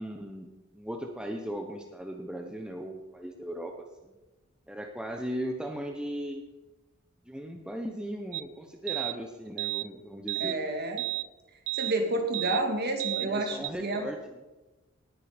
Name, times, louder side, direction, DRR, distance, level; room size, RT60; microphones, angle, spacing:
voice 1, 0.0-3.7 4.0-4.1 4.7-6.4 7.3-10.6 13.2-14.4, equal, 5° right, 3 dB, 1.0 m, -37 dB
sound 1, 8.3-8.4 8.9-9.2 9.6-9.9 10.3-10.6 11.0-11.3 11.7-11.9 12.3-12.6 13.0-13.3 13.6-13.7, right 21 dB, 70° right, 0.4 m, -32 dB
voice 2, 10.4-11.1 11.7-14.1, right 2 dB, 45° right, 4 dB, 2.4 m, -30 dB
18.5 x 9.4 x 5.2 m, 1.1 s
head